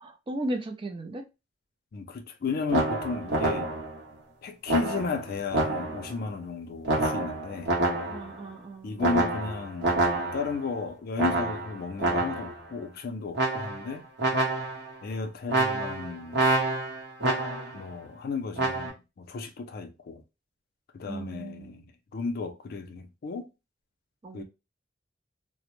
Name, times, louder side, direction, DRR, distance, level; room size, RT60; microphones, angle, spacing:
voice 1, 0.0-1.2 8.1-9.1 21.0-21.8 24.2-24.4, right 1 dB, 25° right, 0.4 m, -36 dB
voice 2, 1.9-3.7 4.4-7.7 8.8-10.0 10.3-14.0 15.0-16.5 17.7-20.2 20.9-21.9 22.1-23.5 24.3-24.4, left 4 dB, 55° left, 0.4 m, -34 dB
sound 1, 2.7-4.0 4.7-6.2 6.9-8.4 9.0-10.6 11.2-12.6 13.3-13.9 14.2-14.9 15.5-17.8 18.6-18.9, right 2 dB, 65° right, 0.8 m, -27 dB
2.0 x 2.0 x 3.0 m
head